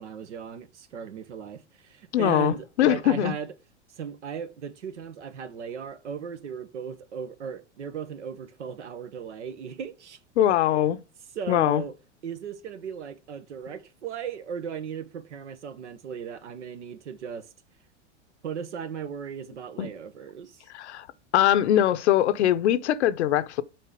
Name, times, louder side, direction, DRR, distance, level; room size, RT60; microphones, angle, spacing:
voice 1, 0.0-3.5 4.0-10.2 10.6-10.8 11.3-11.9 12.2-17.5 18.4-20.6, right 7 dB, 80° right, 1.2 m, -37 dB
voice 2, 2.1-3.3 10.4-11.0 11.5-11.8 19.8-19.9 20.7-21.1 21.3-23.6, left 12 dB, 70° left, 0.8 m, -22 dB
7.8 x 4.4 x 5.1 m
hypercardioid pair, 105°, 35 cm